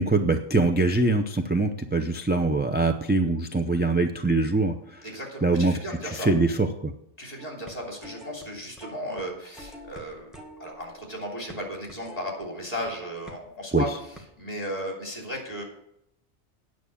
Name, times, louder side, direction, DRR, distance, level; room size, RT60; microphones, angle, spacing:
voice 1, 0.0-5.0 5.4-5.8 6.0-6.9 13.7-13.8, right 2 dB, 15° right, 5 dB, 0.3 m, -23 dB
voice 2, 5.0-6.3 7.2-10.3 10.6-13.9 14.4-15.6, equal, 30° left, 0 dB, 3.3 m, -35 dB
sound 1, 7.4-8.4 8.8-9.3 9.5-12.9 13.2-13.5 13.7-14.2, left 1 dB, ahead, 1.5 m, -46 dB
9.3 x 6.2 x 8.4 m, 0.76 s
omnidirectional pair, 1.2 m